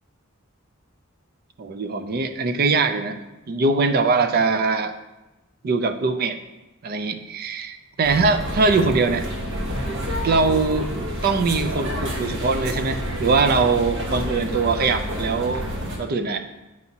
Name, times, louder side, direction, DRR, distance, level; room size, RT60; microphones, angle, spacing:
voice 1, 1.6-3.2 3.5-4.9 5.6-6.4 6.8-9.3 10.2-10.9 11.2-15.7 16.0-16.4, right 4 dB, 45° right, 9 dB, 0.4 m, -22 dB
sound 1, 8.0-16.0, equal, 60° right, 1.0 m, -29 dB
8.2 x 4.8 x 2.8 m, 1.0 s
head